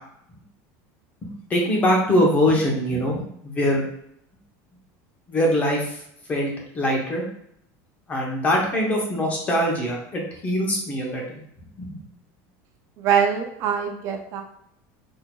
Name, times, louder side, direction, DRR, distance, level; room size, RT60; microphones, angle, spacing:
voice 1, 1.5-3.8 5.3-6.0 6.3-7.2 8.1-11.4 11.8-12.0, equal, 20° left, -1 dB, 0.8 m, -23 dB
voice 2, 13.0-14.4, right 7 dB, 40° right, 3 dB, 0.4 m, -23 dB
4.2 x 2.7 x 2.2 m, 0.71 s
cardioid pair, 170°, 8 cm